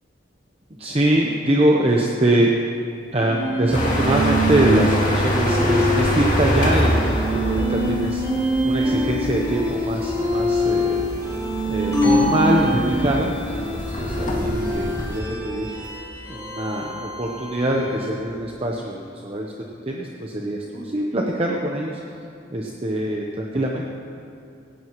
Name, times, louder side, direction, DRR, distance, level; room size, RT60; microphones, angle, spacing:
voice 1, 0.8-2.5 3.1-11.0 11.7-15.7 16.3-19.5 19.9-22.0 22.5-23.9, right 1 dB, 30° right, -1 dB, 0.9 m, -23 dB
sound 1, 3.2-18.3, equal, 15° right, 3.1 m, -26 dB
sound 2, 3.7-15.2, equal, 45° left, 2.1 m, -26 dB
sound 3, 11.9-13.6, left 2 dB, 15° left, 2.8 m, -21 dB
17.0 x 17.0 x 3.1 m, 2.7 s
head